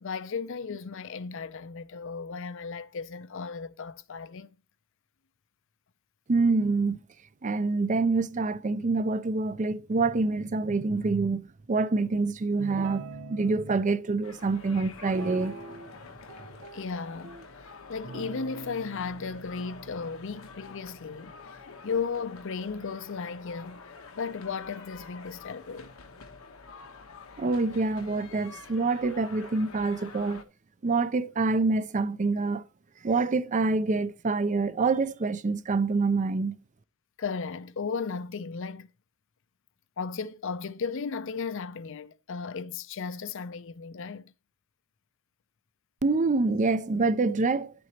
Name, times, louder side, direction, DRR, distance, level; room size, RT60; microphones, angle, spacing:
voice 1, 0.0-4.5 16.7-17.4 17.9-21.6 21.8-25.9 37.2-38.9 40.0-44.3, left 5 dB, 65° left, 0.6 m, -35 dB
voice 2, 6.3-7.0 7.4-13.0 13.3-15.6 27.4-30.4 30.8-32.6 33.0-36.6 46.0-47.7, right 3 dB, 35° right, 0.5 m, -26 dB
Guitar, 12.6-13.8 15.1-16.0 16.3-17.4 18.0-21.5, right 3 dB, 80° right, 0.8 m, -44 dB
sound 1, 14.2-30.4, left 4 dB, 85° left, 1.1 m, -48 dB
11.0 x 7.8 x 2.9 m
head